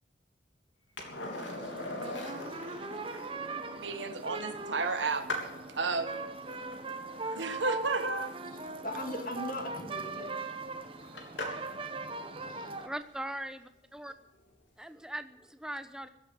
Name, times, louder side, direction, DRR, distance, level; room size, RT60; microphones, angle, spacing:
Skateboard, 1.0-11.8 14.4-14.5, left 1 dB, 90° left, 3.3 m, -43 dB
sound 1, 1.3-12.9, right 3 dB, 30° right, 1.2 m, -40 dB
voice 1, 3.8-5.2 5.8-6.2 7.4-8.3, right 3 dB, 80° right, 9 dB, 1.5 m, -32 dB
voice 2, 8.4-10.4 12.5-12.7, left 1 dB, 50° left, 4 dB, 1.9 m, -39 dB
voice 3, 12.8-14.1 14.8-16.1, right 1 dB, 5° right, 9 dB, 0.9 m, -40 dB
15.5 x 8.8 x 9.5 m, 0.86 s
head